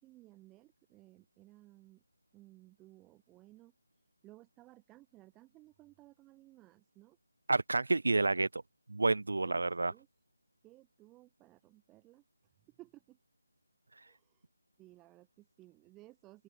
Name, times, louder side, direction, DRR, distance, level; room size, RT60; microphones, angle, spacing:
voice 1, 0.0-2.0 2.3-3.7 4.2-7.2 9.4-9.6 9.9-10.1 10.6-12.2 12.6-13.2 14.1-14.5 14.8-16.4, right 18 dB, 10° right, 3.8 m, -59 dB
voice 2, 7.5-8.6 8.9-9.9, right 3 dB, 60° right, 1.0 m, -29 dB
open air
figure-of-eight pair, 155°, 0 cm